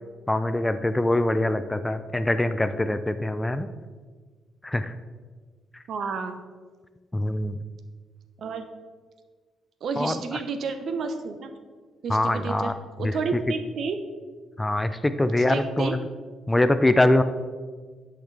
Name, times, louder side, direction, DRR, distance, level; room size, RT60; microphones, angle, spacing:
voice 1, 0.3-3.7 4.6-4.9 5.7-5.8 7.1-7.6 10.0-10.4 12.1-12.7 13.0-13.2 14.6-16.0 16.5-17.2, left 1 dB, 15° left, 11 dB, 0.4 m, -23 dB
voice 2, 5.9-6.4 8.4-8.6 9.8-11.5 12.0-12.7 13.0-14.0 15.4-16.0, right 5 dB, 60° right, 8 dB, 0.7 m, -30 dB
10.5 x 5.8 x 3.3 m, 1.5 s
cardioid pair, 90°, 0 cm